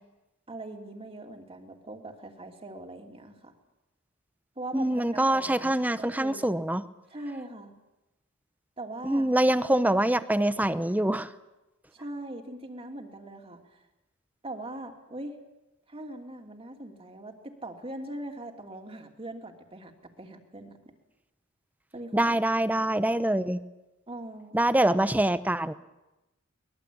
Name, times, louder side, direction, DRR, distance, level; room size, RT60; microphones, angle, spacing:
voice 1, 0.5-3.5 4.6-6.5 7.1-7.7 8.8-9.3 11.9-13.8 14.4-15.4 15.9-20.8 21.9-22.4 24.1-24.6, right 1 dB, 25° right, 4 dB, 2.9 m, -41 dB
voice 2, 4.7-6.8 9.0-11.3 22.1-23.6 24.5-25.7, right 1 dB, 10° right, 13 dB, 0.8 m, -25 dB
23.5 x 21.5 x 8.7 m, 0.99 s
head